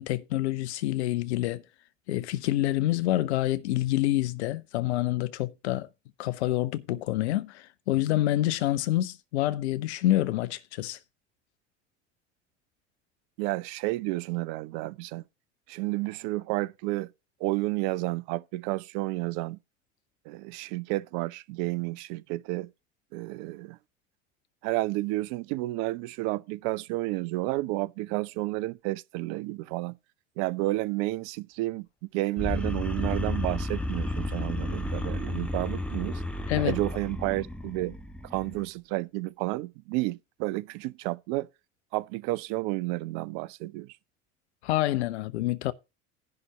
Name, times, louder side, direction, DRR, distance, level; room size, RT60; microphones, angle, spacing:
voice 1, 0.0-1.6 2.1-5.9 6.2-11.0 36.5-36.7 44.6-45.7, left 15 dB, 60° left, 0.7 m, -27 dB
voice 2, 13.4-15.2 15.7-17.1 17.4-19.6 20.3-22.7 23.1-23.8 24.6-29.9 30.4-31.9 32.1-36.2 36.6-38.0 38.3-41.5 41.9-43.9, right 19 dB, 45° right, 0.6 m, -31 dB
sound 1, 32.4-38.6, left 1 dB, 5° left, 1.0 m, -32 dB
10.5 x 4.1 x 7.7 m
figure-of-eight pair, 65°, 37 cm